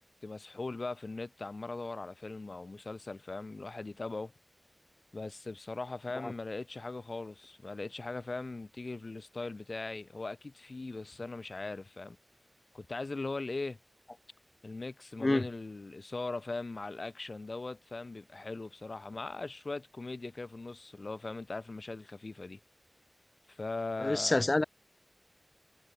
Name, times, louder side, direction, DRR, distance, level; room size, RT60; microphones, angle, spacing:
voice 1, 0.2-4.3 5.1-12.2 12.7-13.8 14.6-22.6 23.5-24.4, left 3 dB, 60° left, 1.1 m, -40 dB
voice 2, 24.0-24.6, left 2 dB, 45° left, 0.4 m, -27 dB
wide cardioid pair, 55°, 0 cm